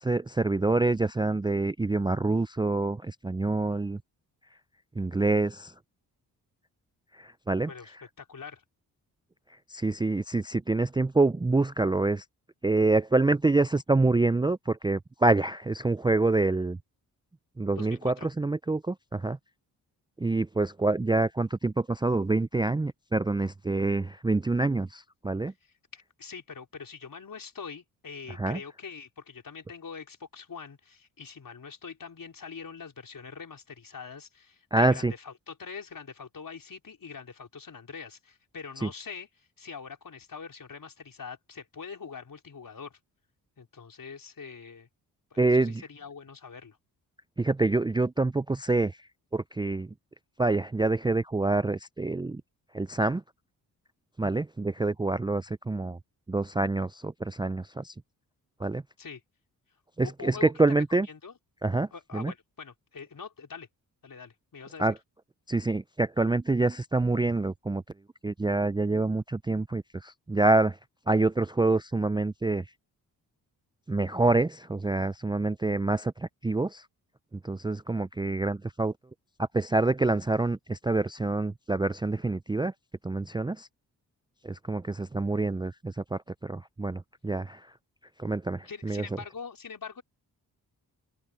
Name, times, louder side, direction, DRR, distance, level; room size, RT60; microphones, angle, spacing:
voice 1, 0.0-4.0 5.0-5.7 7.1-7.7 9.7-12.2 12.6-16.8 17.6-19.4 20.2-25.5 28.3-28.6 34.7-35.1 38.8-38.9 45.4-45.8 47.4-49.0 49.3-49.9 50.4-52.4 52.7-53.2 54.2-56.0 56.3-57.9 58.6-58.8 60.0-61.1 61.6-62.3 64.8-64.9 65.5-67.8 68.2-70.8 71.1-72.6 73.9-76.8 77.4-78.9 79.4-82.7 83.0-83.7 84.4-87.7 88.2-89.0, right 2 dB, 10° right, 0.5 m, -26 dB
voice 2, 7.7-8.6 17.7-18.3 25.9-43.0 43.6-44.9 45.3-46.8 59.0-59.2 60.0-60.5 60.9-61.3 61.9-63.7 64.0-64.9 88.6-90.0, left 5 dB, 50° left, 4.6 m, -43 dB
open air
supercardioid pair, 45°, 41 cm